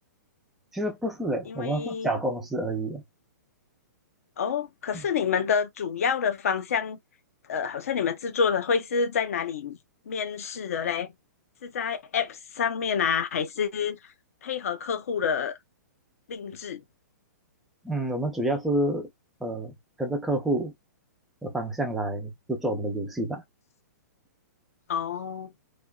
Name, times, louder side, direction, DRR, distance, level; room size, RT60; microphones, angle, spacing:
voice 1, 0.7-3.0 4.9-5.0 17.8-19.1 19.4-19.7 20.0-20.7 21.4-23.4, right 1 dB, ahead, 0.4 m, -28 dB
voice 2, 1.5-2.1 4.4-7.0 7.5-9.8 10.1-11.1 11.6-14.0 14.4-15.6 16.3-16.8 24.9-25.5, left 6 dB, 50° left, 0.7 m, -28 dB
3.4 x 2.3 x 2.3 m
hypercardioid pair, 180°, 10 cm